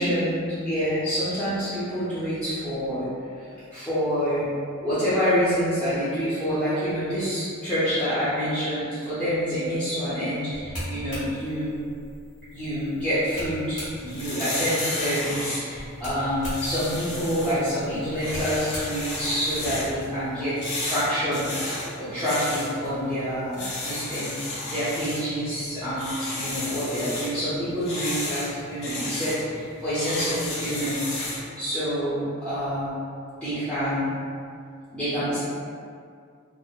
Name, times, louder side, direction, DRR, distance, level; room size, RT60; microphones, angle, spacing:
voice 1, 0.0-3.1 3.7-4.5 4.8-11.7 12.5-33.0 33.4-34.1 34.9-35.4, equal, 5° left, -16 dB, 0.6 m, -27 dB
sound 1, 10.5-14.3 15.7-19.9, equal, 35° left, 1.4 m, -39 dB
sound 2, 13.9-31.5, left 2 dB, 80° left, 0.8 m, -34 dB
3.6 x 2.0 x 2.3 m, 2.3 s
head